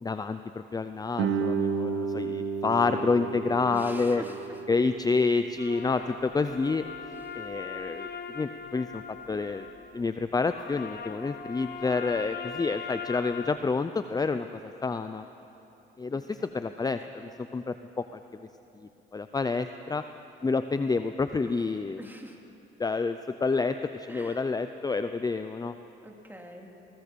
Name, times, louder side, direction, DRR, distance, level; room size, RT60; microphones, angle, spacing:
voice 1, 0.0-4.2 4.7-6.8 7.3-8.1 8.3-9.7 9.9-14.5 14.8-15.2 16.0-18.2 19.1-20.0 20.4-22.0 22.8-25.7, left 4 dB, 20° left, 10 dB, 0.6 m, -28 dB
Guitar, 1.2-6.5, right 5 dB, 85° right, 1.7 m, -33 dB
voice 2, 3.7-4.6 7.1-7.4 16.1-16.6 22.0-22.4 24.1-24.4 26.0-26.7, right 1 dB, 10° right, 2 dB, 2.7 m, -46 dB
sound 1, 5.6-13.6, left 6 dB, 55° left, 1.3 m, -40 dB
20.5 x 19.0 x 7.0 m, 3.0 s
cardioid pair, 90°, 20 cm